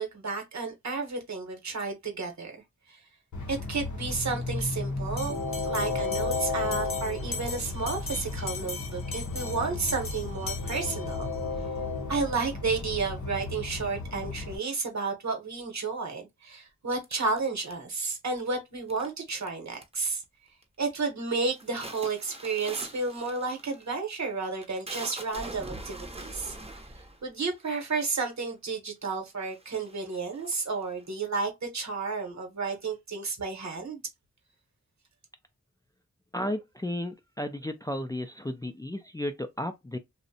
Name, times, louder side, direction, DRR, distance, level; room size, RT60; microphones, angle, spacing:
voice 1, 0.0-2.6 2.9-3.0 3.5-5.4 5.6-11.3 12.1-20.2 20.8-26.8 27.2-34.0, right 4 dB, 70° right, 0.9 m, -32 dB
Train, 3.3-14.6, left 3 dB, 80° left, 0.7 m, -33 dB
Bell, 5.2-11.4, left 4 dB, 45° left, 0.7 m, -40 dB
sound 1, 17.0-18.1 18.9-19.5 19.7-20.2 20.6-21.0 21.3-28.4 29.1-29.2 29.4-31.0, right 2 dB, 20° right, 0.6 m, -44 dB
voice 2, 36.3-40.0, left 1 dB, 15° left, 0.3 m, -33 dB
2.6 x 2.0 x 2.6 m
wide cardioid pair, 60°, 29 cm